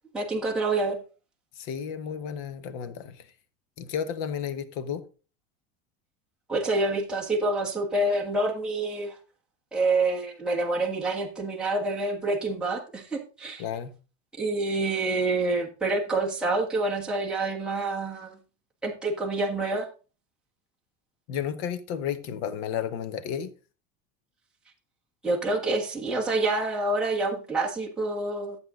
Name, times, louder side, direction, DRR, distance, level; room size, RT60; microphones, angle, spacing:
voice 1, 0.1-1.0 6.5-9.2 9.7-13.6 14.4-18.4 18.8-19.9 25.2-28.6, right 2 dB, 5° right, 1.6 m, -27 dB
voice 2, 1.6-3.2 3.8-5.0 13.6-13.9 21.3-23.5, left 8 dB, 60° left, 1.3 m, -32 dB
13.0 x 7.9 x 3.8 m
cardioid pair, 175°, 31 cm